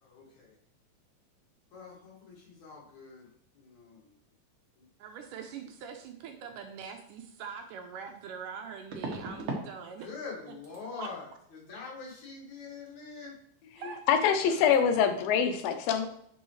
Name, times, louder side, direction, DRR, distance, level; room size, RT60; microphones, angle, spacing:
voice 1, 0.0-0.5 1.7-3.3 3.5-4.1 4.8-4.9 10.0-13.4 14.4-14.6, left 4 dB, 60° left, -3 dB, 3.1 m, -44 dB
voice 2, 5.0-10.1 11.0-11.1 13.8-14.1, right 6 dB, 80° right, 5 dB, 2.1 m, -43 dB
sound 1, 7.4-7.5 8.9-9.7 10.0-10.4 10.6-10.8 13.8-13.9 14.1-14.4 14.6-14.8, right 3 dB, 60° right, 1.4 m, -38 dB
voice 3, 13.8-16.1, left 7 dB, 85° left, 7 dB, 2.5 m, -25 dB
9.7 x 5.5 x 3.1 m, 0.70 s
omnidirectional pair, 4.0 m